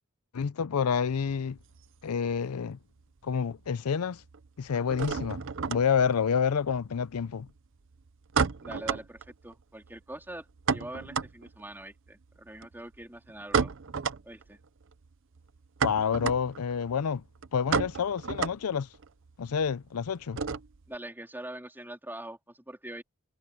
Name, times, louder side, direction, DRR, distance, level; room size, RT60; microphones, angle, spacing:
voice 1, 0.3-1.6 2.0-2.8 3.2-4.2 4.6-7.5 15.8-17.2 17.5-18.9 19.4-20.4, left 6 dB, 85° left, 0.5 m, -28 dB
sound 1, 1.1-2.7 3.0-3.7 3.9-21.0, right 5 dB, 60° right, 0.7 m, -34 dB
voice 2, 8.6-13.7 14.2-14.6 20.9-23.0, right 1 dB, 10° right, 3.6 m, -43 dB
head